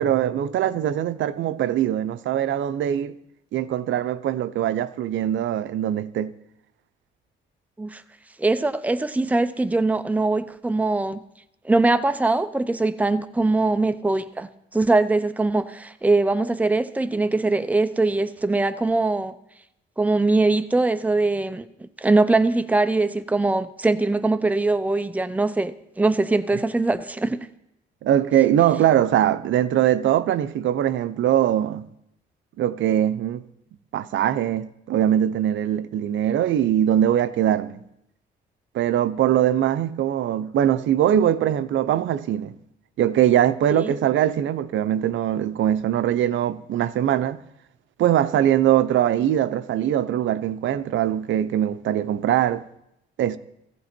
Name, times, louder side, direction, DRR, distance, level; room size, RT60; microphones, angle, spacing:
voice 1, 0.0-3.1 3.5-6.3 28.0-31.9 32.6-33.4 33.9-37.8 38.7-42.5 43.0-47.4 48.0-52.6 53.2-53.4, right 11 dB, 75° right, 0.8 m, -22 dB
voice 2, 8.4-11.2 11.6-19.4 20.0-27.5 43.7-43.9, right 2 dB, 5° right, 0.8 m, -22 dB
17.5 x 15.5 x 4.5 m
cardioid pair, 90°, 20 cm